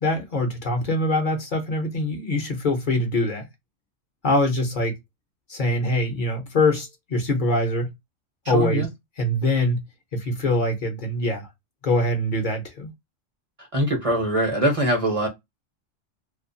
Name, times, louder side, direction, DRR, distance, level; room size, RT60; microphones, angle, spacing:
voice 1, 0.0-3.5 4.2-5.0 5.5-7.9 8.5-8.8 9.2-9.8 10.1-11.5 11.8-12.9, left 1 dB, 45° left, 0.8 m, -23 dB
voice 2, 8.5-8.9 13.6-15.3, right 1 dB, 35° right, 0.6 m, -22 dB
2.4 x 2.4 x 2.5 m
omnidirectional pair, 1.3 m